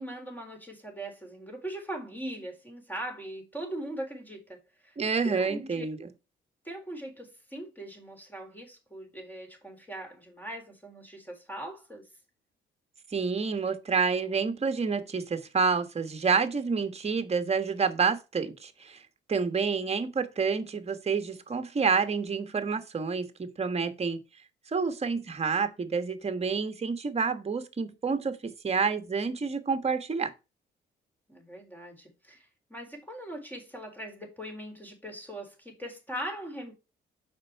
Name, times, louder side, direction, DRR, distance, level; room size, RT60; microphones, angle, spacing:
voice 1, 0.0-5.0 5.2-5.9 6.6-12.0 31.3-36.7, right 1 dB, 10° left, 3.9 m, -40 dB
voice 2, 5.0-6.0 13.1-19.0 19.3-24.2 24.7-30.3, right 5 dB, 30° right, 1.4 m, -28 dB
6.6 x 5.4 x 4.7 m
cardioid pair, 90°, 20 cm